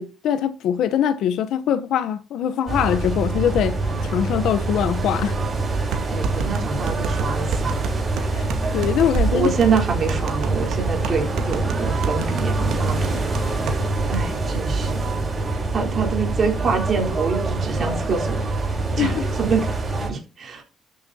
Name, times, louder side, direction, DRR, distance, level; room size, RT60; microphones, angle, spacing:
voice 1, 0.0-3.8 4.1-5.3 8.3-9.5 19.0-19.2, left 9 dB, 80° left, 1.0 m, -22 dB
sound 1, 2.7-20.1, right 3 dB, 30° right, 6.3 m, -25 dB
sound 2, 5.9-13.8 14.1-14.2 14.5-14.9, right 5 dB, 85° right, 2.0 m, -31 dB
voice 2, 6.1-7.8 9.3-13.5 14.1-15.1 15.7-18.5 19.0-20.6, right 5 dB, 45° right, 4.1 m, -26 dB
13.0 x 7.6 x 2.9 m
cardioid pair, 115°, 0 cm